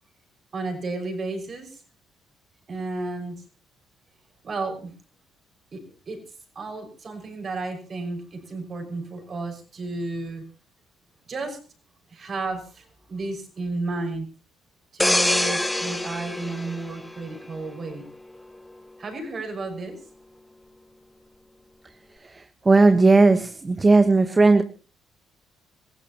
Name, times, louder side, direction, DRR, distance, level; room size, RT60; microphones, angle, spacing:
voice 1, 0.5-1.8 2.7-3.4 4.4-4.9 5.7-6.2 6.5-10.4 11.3-11.6 12.1-14.3 14.9-18.1 19.0-20.0, right 3 dB, 45° right, 4 dB, 5.9 m, -32 dB
sound 1, 15.0-17.7 18.1-18.4, left 1 dB, 10° left, 0.9 m, -25 dB
voice 2, 22.7-24.6, right 3 dB, 25° right, 10 dB, 1.1 m, -16 dB
26.5 x 15.5 x 3.0 m, 0.35 s
supercardioid pair, 75°, 0 cm